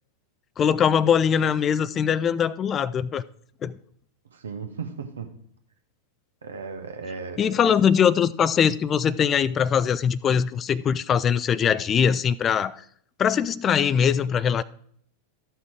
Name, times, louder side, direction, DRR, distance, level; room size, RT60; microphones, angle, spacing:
voice 1, 0.6-3.2 3.6-3.8 7.4-12.8 13.2-14.6, left 8 dB, 25° left, 0.3 m, -22 dB
voice 2, 4.3-5.3 6.4-7.7, right 5 dB, 70° right, 1.3 m, -36 dB
13.5 x 5.9 x 4.7 m
figure-of-eight pair, 90°, 0 cm